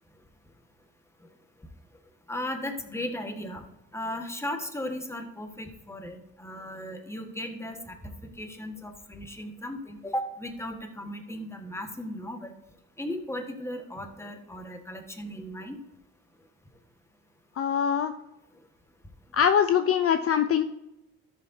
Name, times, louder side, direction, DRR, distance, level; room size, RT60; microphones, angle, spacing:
voice 1, 2.3-3.6 3.9-8.1 8.4-12.5 13.0-15.8, left 1 dB, 10° left, 4 dB, 1.6 m, -36 dB
voice 2, 17.6-18.1 19.3-20.6, left 8 dB, 50° left, 9 dB, 0.6 m, -23 dB
13.0 x 7.0 x 2.8 m, 0.92 s
cardioid pair, 90°, 30 cm